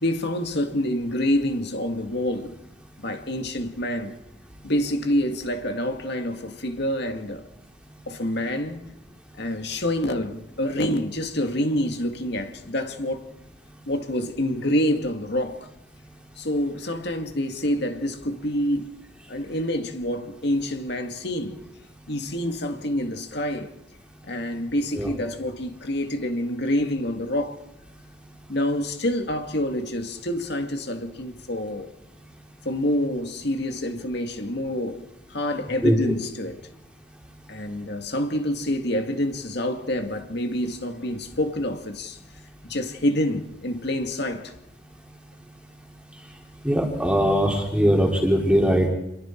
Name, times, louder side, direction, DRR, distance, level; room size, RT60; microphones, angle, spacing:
voice 1, 0.0-2.5 3.0-4.2 4.6-7.4 8.1-8.8 9.4-13.3 13.9-15.7 16.4-18.9 19.3-21.6 22.1-23.7 24.2-27.6 28.5-31.9 32.7-35.0 35.3-36.7 37.5-42.2 42.6-44.5, left 1 dB, 60° left, 2.2 m, -27 dB
voice 2, 46.6-48.9, equal, 5° right, 3.3 m, -20 dB
27.5 x 22.5 x 4.6 m
head